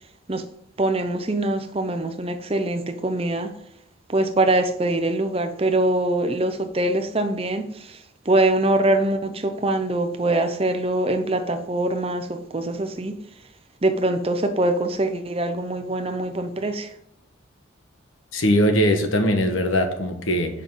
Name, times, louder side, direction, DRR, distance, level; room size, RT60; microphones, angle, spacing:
voice 1, 0.8-3.5 4.1-13.2 13.8-16.9, right 2 dB, 30° right, 8 dB, 0.7 m, -23 dB
voice 2, 18.3-20.6, equal, 80° left, 5 dB, 1.3 m, -21 dB
7.2 x 5.4 x 5.6 m, 0.76 s
head